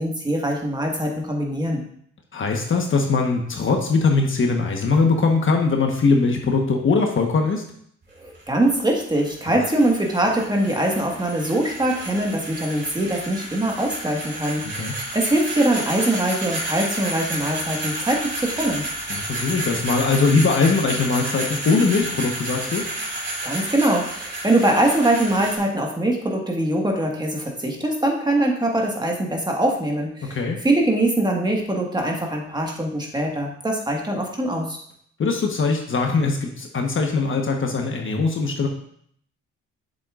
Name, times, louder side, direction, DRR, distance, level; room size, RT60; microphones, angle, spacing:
voice 1, 0.0-1.8 8.1-18.8 23.4-34.8, right 1 dB, 15° right, 0 dB, 1.6 m, -23 dB
voice 2, 2.3-7.6 9.5-9.6 14.8-14.9 19.1-22.8 30.2-30.6 35.2-38.7, left 4 dB, 40° left, 2 dB, 1.2 m, -21 dB
sound 1, 8.0-25.6, right 1 dB, 40° right, 2.8 m, -31 dB
7.6 x 7.3 x 2.5 m, 0.65 s
cardioid pair, 90°, 30 cm